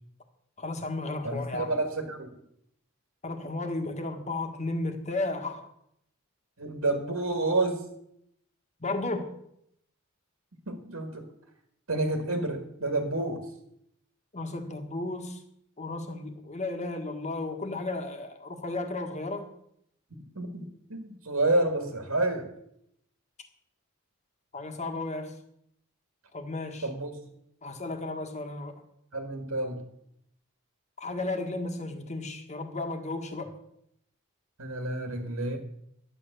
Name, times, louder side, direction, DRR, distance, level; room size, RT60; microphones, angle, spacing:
voice 1, 0.6-1.7 3.2-5.7 8.8-9.3 14.3-15.4 15.8-19.5 24.5-25.3 26.3-26.9 27.6-28.8 31.0-33.6, left 2 dB, 35° left, 5 dB, 1.6 m, -34 dB
voice 2, 1.2-2.3 6.6-7.8 10.7-11.3 11.9-13.4 20.4-22.5 26.8-27.1 29.1-29.8 34.6-35.6, right 2 dB, 80° right, 5 dB, 1.9 m, -29 dB
11.5 x 9.1 x 6.7 m, 0.75 s
head